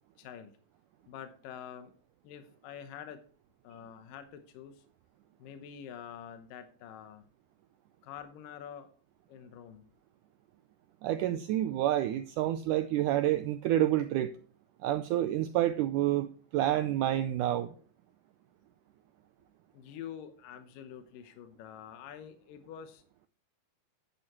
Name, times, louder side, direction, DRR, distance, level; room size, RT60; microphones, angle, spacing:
voice 1, 0.2-0.5 1.1-1.9 2.2-3.2 3.6-4.8 5.4-7.2 8.0-8.9 9.3-9.9 19.7-23.0, left 9 dB, 75° left, 8 dB, 2.5 m, -46 dB
voice 2, 11.0-14.3 14.8-17.7, right 13 dB, 90° right, 11 dB, 1.8 m, -28 dB
11.0 x 9.8 x 3.0 m, 0.42 s
omnidirectional pair, 4.2 m